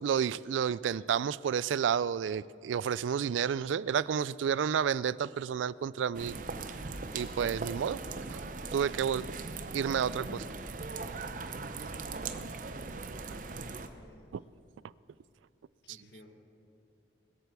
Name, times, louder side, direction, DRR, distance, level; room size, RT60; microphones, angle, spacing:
voice 1, 0.0-6.4 7.1-9.3 9.7-10.5 11.8-11.9 12.3-12.5 13.3-13.4 14.3-14.4 15.9-16.0, right 7 dB, 90° right, 20 dB, 0.3 m, -31 dB
sound 1, 6.1-13.9, right 3 dB, 45° right, 0.7 m, -39 dB
voice 2, 12.7-14.3 15.8-16.3, left 1 dB, 65° left, 3 dB, 1.8 m, -58 dB
21.0 x 8.0 x 6.9 m, 2.5 s
head